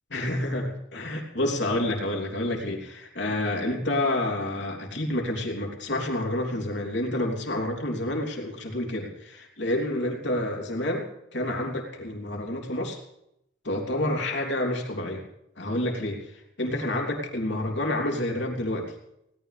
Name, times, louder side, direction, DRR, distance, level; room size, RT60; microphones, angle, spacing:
voice 1, 0.1-11.1 11.3-13.0 13.6-15.2 15.6-18.9, left 1 dB, 70° left, 1 dB, 3.2 m, -29 dB
20.5 x 17.5 x 3.4 m, 0.78 s
head